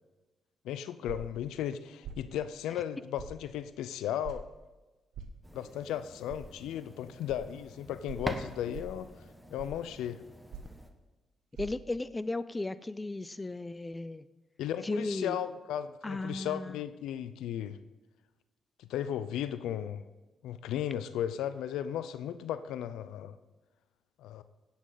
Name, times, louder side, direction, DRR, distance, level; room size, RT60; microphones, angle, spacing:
voice 1, 0.6-4.4 5.5-9.1 9.5-10.2 14.6-17.8 18.8-20.0 20.4-23.4 24.2-24.4, left 10 dB, 85° left, 13 dB, 0.5 m, -35 dB
sound 1, 1.1-1.4 2.0-2.3 3.2-3.3 4.2-4.4 5.1-5.4 6.3-6.4 7.3-7.4 8.1-8.3 8.7-9.0 9.6-9.8 10.5-10.8 11.5-11.7, right 6 dB, 70° right, 1.2 m, -43 dB
sound 2, 5.4-10.9, equal, ahead, 1.5 m, -45 dB
voice 2, 11.6-14.3 14.8-15.4 16.0-16.8, left 2 dB, 20° left, 15 dB, 0.5 m, -35 dB
16.5 x 8.4 x 4.0 m, 1.2 s
supercardioid pair, 60°, 0 cm